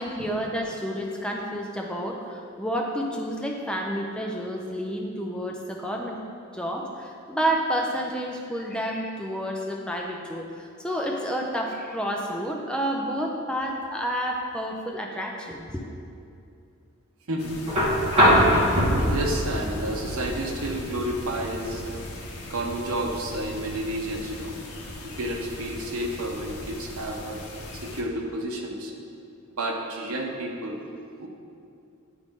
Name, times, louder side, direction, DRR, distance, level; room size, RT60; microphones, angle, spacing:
voice 1, 0.0-6.2 6.5-15.8, equal, 5° left, 0 dB, 0.4 m, -30 dB
voice 2, 17.3-17.6 19.1-22.0 22.5-24.6 25.0-27.4 27.7-28.9 29.6-30.8 31.2-31.3, right 1 dB, 75° right, 1 dB, 0.8 m, -31 dB
sound 1, 17.4-28.0, left 2 dB, 75° left, 0.8 m, -40 dB
sound 2, 17.7-25.7 27.1-27.2, equal, 25° right, 1.6 m, -25 dB
9.4 x 3.9 x 3.6 m, 2.5 s
head